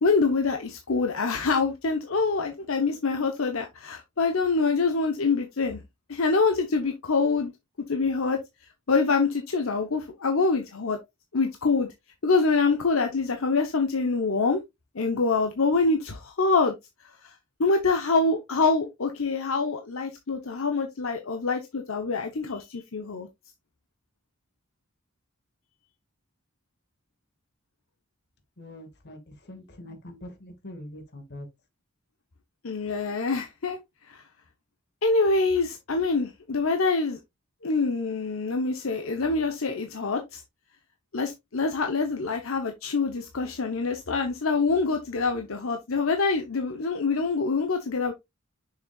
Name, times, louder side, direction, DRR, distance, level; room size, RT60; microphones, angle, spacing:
voice 1, 0.0-5.8 6.1-7.5 7.9-8.4 8.9-11.0 11.3-11.9 12.2-14.6 14.9-16.7 17.6-23.3 32.6-33.8 34.1-34.2 35.0-37.2 37.6-40.4 41.1-48.1, left 4 dB, 80° left, 0.9 m, -25 dB
voice 2, 28.6-31.5, left 1 dB, 55° left, 1.9 m, -43 dB
6.6 x 6.3 x 2.4 m
head